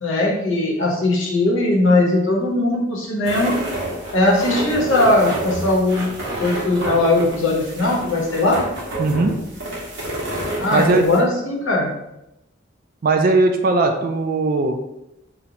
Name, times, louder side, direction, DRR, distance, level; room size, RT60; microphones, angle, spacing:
voice 1, 0.0-3.5 4.1-6.0 6.4-8.6 10.6-11.9, left 2 dB, 70° left, -2 dB, 0.9 m, -19 dB
sound 1, 3.2-11.2, right 1 dB, 60° right, 0.9 m, -29 dB
voice 2, 9.0-9.4 10.7-11.1 13.0-14.8, right 3 dB, 45° right, 5 dB, 0.3 m, -18 dB
3.8 x 2.1 x 2.8 m, 0.87 s
head